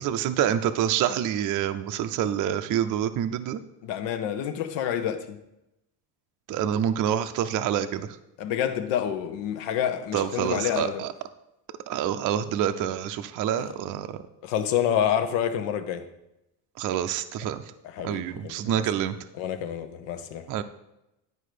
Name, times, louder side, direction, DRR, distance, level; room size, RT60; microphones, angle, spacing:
voice 1, 0.0-3.6 6.5-8.1 10.1-11.1 11.9-14.2 16.8-17.6 18.0-19.2 20.5-20.6, right 10 dB, 45° right, 0.5 m, -27 dB
voice 2, 3.8-5.4 8.4-11.0 13.6-13.7 14.4-16.1 17.8-18.8 19.4-20.4, left 9 dB, 75° left, 1.0 m, -28 dB
9.8 x 4.7 x 5.0 m
cardioid pair, 125°, 44 cm